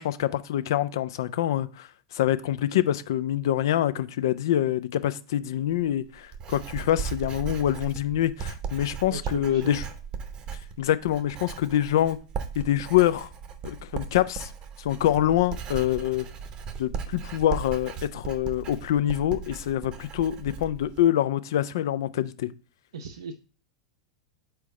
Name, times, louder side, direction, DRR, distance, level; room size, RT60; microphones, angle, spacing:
voice 1, 0.0-9.8 10.8-12.2 12.5-13.3 13.6-14.5 14.8-16.3 16.8-22.5, left 12 dB, 60° left, 0.4 m, -25 dB
Writing, 5.7-21.1, right 6 dB, 30° right, 0.8 m, -37 dB
voice 2, 9.1-9.8 22.9-23.3, right 5 dB, 65° right, 0.5 m, -37 dB
4.7 x 4.5 x 4.9 m
figure-of-eight pair, 90°, 3 cm